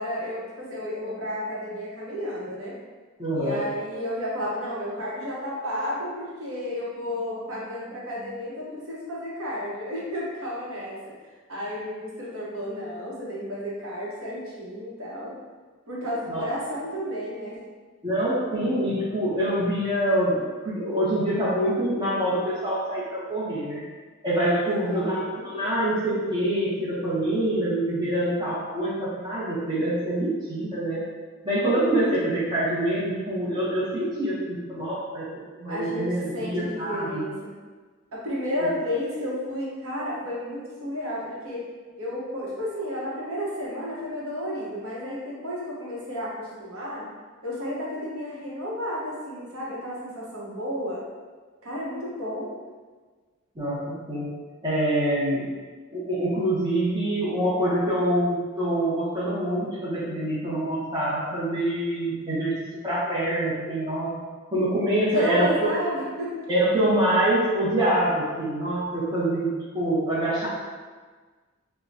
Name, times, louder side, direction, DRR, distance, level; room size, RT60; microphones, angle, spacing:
voice 1, 0.0-2.8 3.3-11.1 11.5-15.3 15.9-17.5 24.6-25.1 32.0-32.1 35.7-37.5 38.1-41.7 42.0-47.1 47.4-51.0 51.6-52.5 65.1-66.4, left 1 dB, 70° right, -6 dB, 1.0 m, -32 dB
voice 2, 3.2-3.6 16.3-16.5 18.0-23.8 24.2-31.0 31.4-35.3 35.6-37.2 38.6-38.7 53.6-54.3 54.6-55.6 55.9-64.1 64.5-65.7 66.5-70.5, right 1 dB, 20° right, -8 dB, 0.8 m, -25 dB
5.2 x 2.2 x 2.7 m, 1.4 s
head